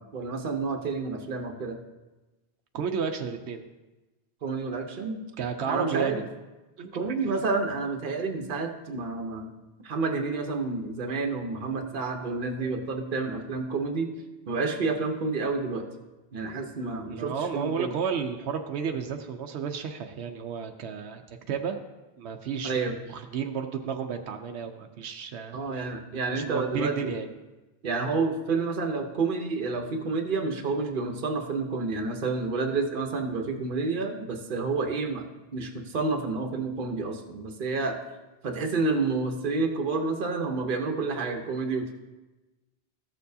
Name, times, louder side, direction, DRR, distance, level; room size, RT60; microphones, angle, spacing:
voice 1, 0.0-1.8 4.4-5.2 5.7-6.2 6.9-9.5 9.8-14.1 14.5-15.8 16.3-17.9 22.6-23.0 25.5-27.1 27.8-35.3 35.5-38.0 38.4-41.9, right 3 dB, 55° right, 4 dB, 1.0 m, -29 dB
voice 2, 2.7-3.6 5.4-6.3 6.8-7.4 17.1-21.8 22.2-25.6 26.3-27.3, right 6 dB, 85° right, 5 dB, 0.9 m, -32 dB
14.0 x 6.7 x 2.7 m, 1.1 s
omnidirectional pair, 1.1 m